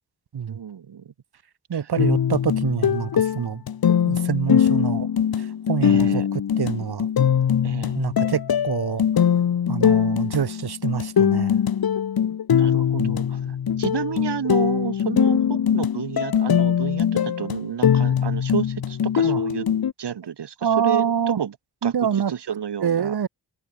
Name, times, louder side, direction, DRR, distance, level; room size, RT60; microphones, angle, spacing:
voice 1, 0.5-1.1 1.7-1.8 5.8-6.3 7.6-8.1 12.6-19.7 20.0-21.6 21.8-21.9 22.3-23.1, right 8 dB, 85° right, 1.8 m, -31 dB
voice 2, 1.7-3.6 4.0-5.1 5.4-7.1 7.9-9.0 9.7-11.6 13.0-13.2 19.2-19.4 20.6-21.4 21.8-22.3 22.8-23.3, right 8 dB, 70° right, 1.4 m, -26 dB
sound 1, 2.0-19.9, left 8 dB, 65° left, 1.0 m, -21 dB
wide cardioid pair, 90°, 40 cm